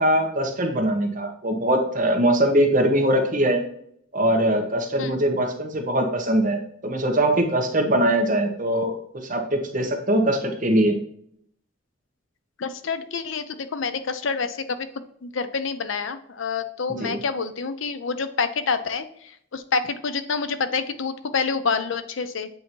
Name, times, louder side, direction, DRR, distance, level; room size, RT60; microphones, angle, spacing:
voice 1, 0.0-3.6 4.1-11.0 17.0-17.2, right 1 dB, 45° right, 2 dB, 1.2 m, -22 dB
voice 2, 12.6-14.6 15.2-22.5, left 5 dB, 75° left, 11 dB, 0.6 m, -27 dB
8.3 x 2.8 x 4.5 m, 0.68 s
head